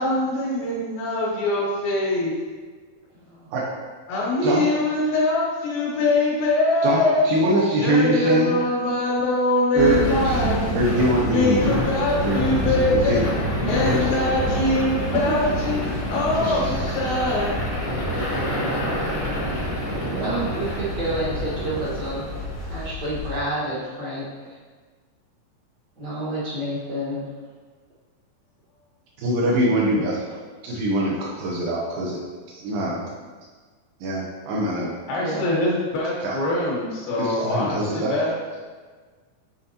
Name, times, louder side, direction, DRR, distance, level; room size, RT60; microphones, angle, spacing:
voice 1, 0.0-2.3 4.1-7.3 7.8-10.8 11.3-13.2 13.6-17.6 35.1-38.3, left 2 dB, 80° left, -5 dB, 3.3 m, -23 dB
voice 2, 3.1-3.5 15.3-15.4 20.1-22.2 22.7-24.5 26.0-27.3 35.2-35.5, right 1 dB, 45° right, -8 dB, 1.5 m, -29 dB
voice 3, 7.3-8.6 9.7-10.0 10.2-10.4 10.7-11.8 12.2-12.5 12.7-13.3 13.8-14.1 16.3-17.0 29.2-30.3 30.6-32.2 32.5-33.1 34.0-34.9 36.2-36.4 37.2-38.1, right 1 dB, 80° right, -4 dB, 2.6 m, -23 dB
sound 1, 9.8-23.4, equal, 40° left, 1.2 m, -26 dB
9.3 x 3.9 x 2.9 m, 1.5 s
omnidirectional pair, 4.0 m